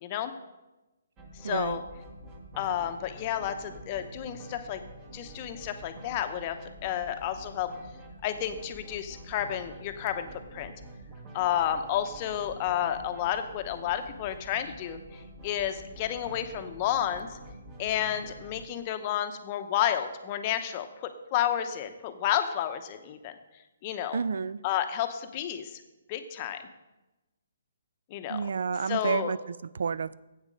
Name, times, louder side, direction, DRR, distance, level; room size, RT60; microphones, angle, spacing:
voice 1, 0.0-0.3 1.4-1.8 2.6-4.8 5.1-7.7 8.2-10.7 11.3-15.0 15.4-17.3 17.8-23.3 23.8-24.2 24.6-25.8 26.1-26.6 28.1-28.4 28.9-29.3, left 10 dB, 35° left, 8 dB, 0.7 m, -31 dB
sound 1, 1.2-18.6, right 1 dB, 25° right, 1.4 m, -47 dB
voice 2, 1.4-1.8 24.1-24.6 28.3-30.2, right 5 dB, 70° right, 19 dB, 0.3 m, -30 dB
8.1 x 7.4 x 5.2 m, 1.0 s
hypercardioid pair, 150°, 0 cm